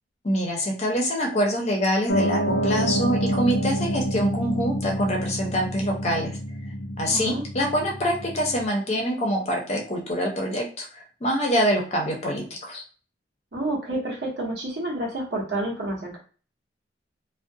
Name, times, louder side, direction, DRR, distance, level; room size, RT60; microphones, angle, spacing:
voice 1, 0.2-6.4 7.0-12.8, equal, 35° left, 0 dB, 0.6 m, -25 dB
Piano, 2.1-8.6, equal, 80° left, 0.5 m, -27 dB
voice 2, 7.1-7.4 13.5-16.2, right 1 dB, 65° right, -2 dB, 1.0 m, -29 dB
2.4 x 2.1 x 2.6 m, 0.39 s
head